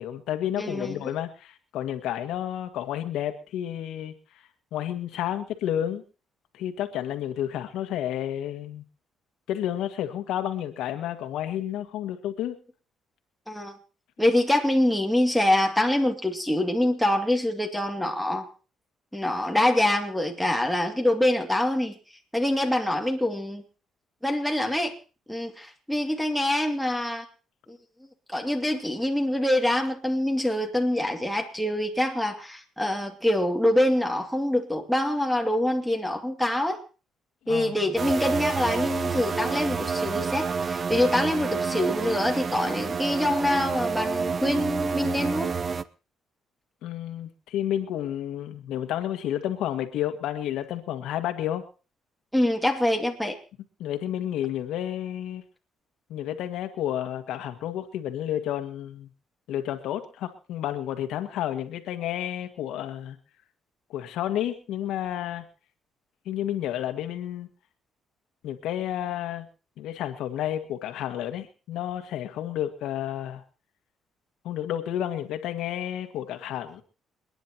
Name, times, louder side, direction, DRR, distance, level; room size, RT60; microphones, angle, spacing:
voice 1, 0.0-4.1 4.7-6.0 6.5-8.8 9.5-12.6 37.5-37.8 46.8-51.6 53.8-55.4 56.1-59.1 59.5-63.2 63.9-65.5 66.3-67.5 68.4-69.5 69.8-73.4 74.4-76.8, left 11 dB, 85° left, 7 dB, 1.9 m, -31 dB
voice 2, 0.6-1.1 13.5-13.8 14.2-18.5 19.1-21.9 22.3-23.6 24.2-25.0 25.3-27.2 27.7-27.8 28.3-36.8 37.5-45.5 52.3-53.4, left 1 dB, ahead, 2 dB, 2.5 m, -25 dB
sound 1, 38.0-45.8, right 5 dB, 35° right, 0.7 m, -29 dB
28.5 x 10.0 x 3.0 m, 0.35 s
cardioid pair, 105°, 0 cm